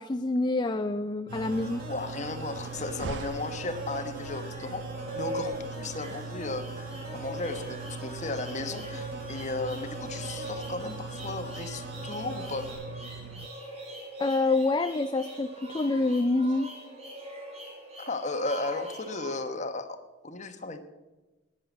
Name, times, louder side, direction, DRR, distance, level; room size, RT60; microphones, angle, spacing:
voice 1, 0.0-1.8 14.2-16.7, left 2 dB, 25° left, 9 dB, 0.4 m, -27 dB
sound 1, 1.3-12.7, equal, 50° right, 3.9 m, -44 dB
sound 2, 1.3-13.5, right 5 dB, 70° right, 0.4 m, -41 dB
voice 2, 1.9-4.9 5.1-12.7 18.0-20.8, left 3 dB, 40° left, 8 dB, 1.2 m, -35 dB
sound 3, 2.6-19.3, right 1 dB, 35° right, 3.3 m, -42 dB
11.5 x 9.9 x 7.9 m, 1.1 s
head